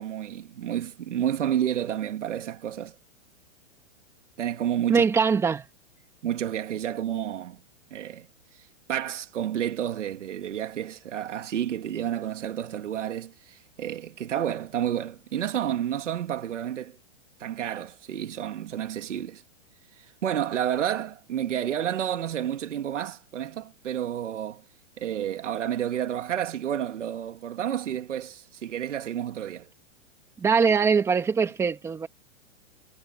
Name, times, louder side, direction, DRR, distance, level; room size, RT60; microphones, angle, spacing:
voice 1, 0.0-2.9 4.4-5.1 6.2-7.6 7.9-8.3 8.9-17.0 17.4-19.4 20.2-24.6 25.0-29.7, right 10 dB, 80° right, 2.7 m, -30 dB
voice 2, 4.9-5.6 30.4-32.1, right 5 dB, 5° right, 2.0 m, -22 dB
hypercardioid pair, 175°, 36 cm